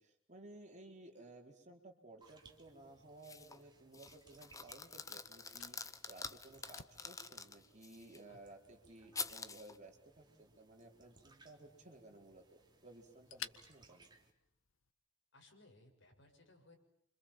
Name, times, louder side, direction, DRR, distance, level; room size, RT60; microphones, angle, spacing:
voice 1, 0.0-12.4 12.8-14.1, right 2 dB, 40° right, 2 dB, 4.6 m, -57 dB
sound 1, 2.2-14.3, right 3 dB, 20° right, 3.5 m, -67 dB
sound 2, 3.2-3.6 3.9-8.2 9.1-9.8, left 4 dB, 15° left, 1.1 m, -47 dB
Fire, 3.4-14.9, left 9 dB, 85° left, 1.5 m, -58 dB
voice 2, 15.3-16.8, left 2 dB, 65° left, 3 dB, 7.2 m, -63 dB
29.5 x 26.0 x 7.5 m, 0.70 s
head